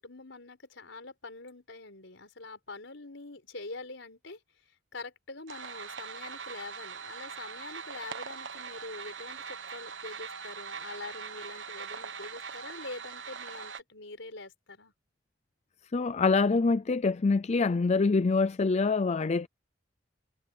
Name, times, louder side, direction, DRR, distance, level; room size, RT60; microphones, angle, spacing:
voice 1, 0.0-4.4 4.9-14.9, left 3 dB, 80° left, 4.7 m, -44 dB
sound 1, 5.5-13.8, right 6 dB, 75° right, 1.4 m, -42 dB
voice 2, 15.9-19.5, left 4 dB, 35° left, 0.4 m, -25 dB
head